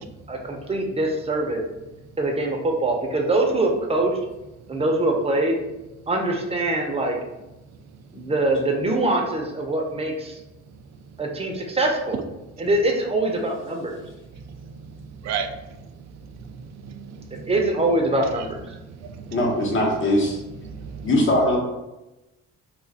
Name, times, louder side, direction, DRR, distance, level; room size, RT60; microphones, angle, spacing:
voice 1, 0.3-1.6 2.2-4.1 4.7-5.5 6.1-7.2 8.1-10.4 11.2-12.2 12.6-14.0 17.3-18.6, right 2 dB, 20° right, 1 dB, 0.7 m, -23 dB
voice 2, 14.5-17.5 18.7-19.4 20.6-21.1, right 6 dB, 65° right, 7 dB, 0.5 m, -36 dB
voice 3, 19.3-20.4 21.0-21.6, left 1 dB, 40° left, -2 dB, 1.1 m, -20 dB
2.5 x 2.4 x 4.0 m, 0.99 s
cardioid pair, 90°, 30 cm